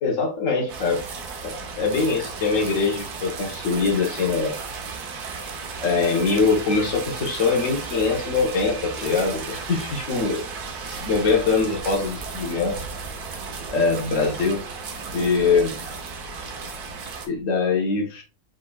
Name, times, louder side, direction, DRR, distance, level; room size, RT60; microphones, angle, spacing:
voice 1, 0.0-1.0 1.4-4.6 5.8-10.4 10.9-12.8 13.7-14.6 15.1-15.7 17.2-18.2, left 4 dB, 55° left, 1.4 m, -23 dB
sound 1, 0.7-17.3, right 4 dB, 80° right, 1.4 m, -34 dB
5.1 x 3.7 x 2.3 m
omnidirectional pair, 1.7 m